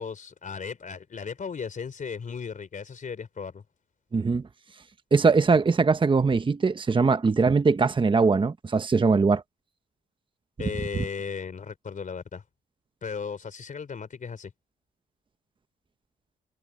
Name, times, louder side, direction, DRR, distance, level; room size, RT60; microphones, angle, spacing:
voice 1, 0.0-3.6 10.6-12.4 13.0-14.5, left 6 dB, 40° left, 3.7 m, -36 dB
voice 2, 4.1-4.4 5.1-9.4, right 4 dB, 25° right, 1.1 m, -21 dB
cardioid pair, 90°, 20 cm